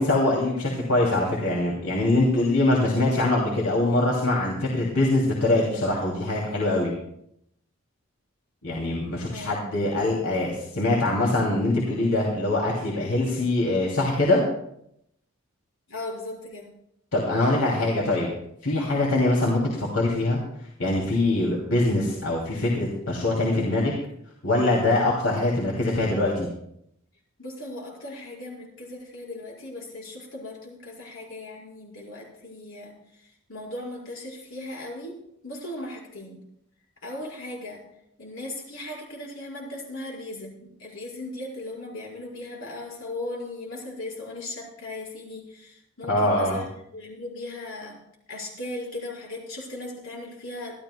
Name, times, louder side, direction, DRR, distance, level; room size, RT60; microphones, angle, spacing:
voice 1, 0.0-6.9 8.6-14.4 17.1-18.3 18.6-20.4 20.8-23.9 24.4-26.5 46.1-46.6, left 2 dB, 90° left, -3 dB, 2.7 m, -23 dB
voice 2, 9.3-9.6 15.9-16.7 27.4-35.1 35.4-36.4 37.0-37.8 38.2-48.0 48.3-50.8, left 2 dB, 70° left, -3 dB, 5.0 m, -38 dB
25.5 x 12.0 x 2.2 m, 0.75 s
head